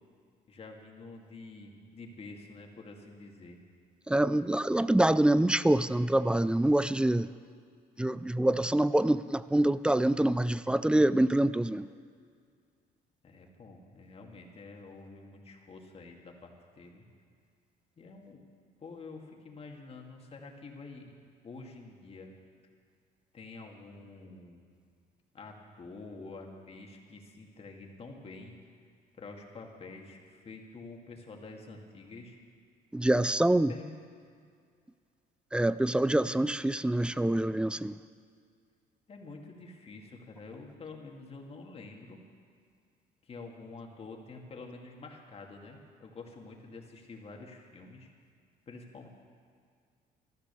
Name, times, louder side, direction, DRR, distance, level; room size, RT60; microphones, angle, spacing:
voice 1, 0.5-3.6 13.2-17.0 18.0-18.4 18.8-21.2 21.4-22.3 23.3-24.6 25.3-28.6 29.2-32.4 33.1-34.0 39.1-42.2 43.2-48.1 48.7-49.1, left 3 dB, 35° left, 2 dB, 2.2 m, -48 dB
voice 2, 4.1-7.3 8.0-11.9 32.9-33.7 35.5-38.0, right 1 dB, 5° right, 16 dB, 0.4 m, -25 dB
14.0 x 13.0 x 7.0 m, 2.1 s
cardioid pair, 110°, 17 cm